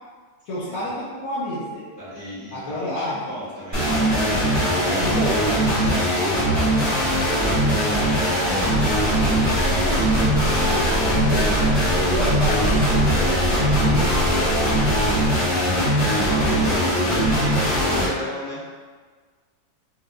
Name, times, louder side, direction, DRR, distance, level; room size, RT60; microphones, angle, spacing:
voice 1, 0.5-1.8 2.5-3.2 4.7-5.4 10.6-11.6 11.9-15.1, left 1 dB, 70° left, -9 dB, 1.1 m, -30 dB
voice 2, 2.0-6.8 7.0-8.6 14.6-14.9 15.4-18.6, equal, 35° left, -12 dB, 1.0 m, -36 dB
sound 1, 3.7-18.1, equal, 15° right, 0.9 m, -21 dB
sound 2, 8.9-15.3, right 1 dB, 55° right, 1.3 m, -27 dB
4.3 x 2.5 x 2.3 m, 1.5 s
omnidirectional pair, 1.7 m